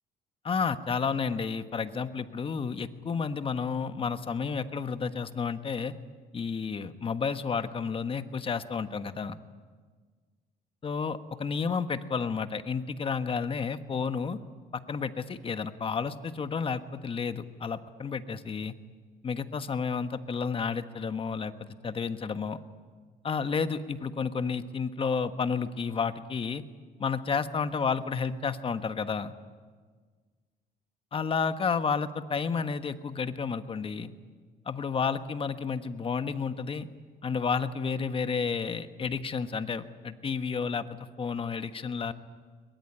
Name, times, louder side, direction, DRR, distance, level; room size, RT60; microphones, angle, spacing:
voice 1, 0.4-6.0 6.3-9.4 10.8-14.4 14.7-18.7 19.2-21.5 21.8-22.6 23.2-26.6 27.0-29.3 31.1-34.1 34.6-36.9 37.2-40.9 41.2-42.1, left 5 dB, 30° left, 10 dB, 1.3 m, -31 dB
22.5 x 21.0 x 9.9 m, 1.5 s
cardioid pair, 110°, 17 cm